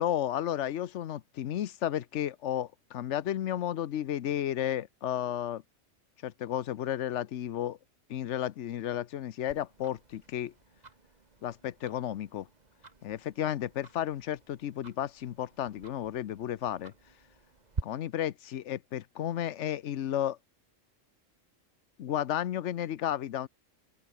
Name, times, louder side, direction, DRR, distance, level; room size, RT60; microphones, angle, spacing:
voice 1, 0.0-5.6 6.2-7.8 8.1-10.5 11.4-12.5 13.0-16.9 17.8-20.4 22.0-23.5, left 11 dB, 70° left, 1.0 m, -33 dB
Tick-tock, 9.5-17.8, right 3 dB, 35° right, 1.7 m, -47 dB
open air
omnidirectional pair, 1.3 m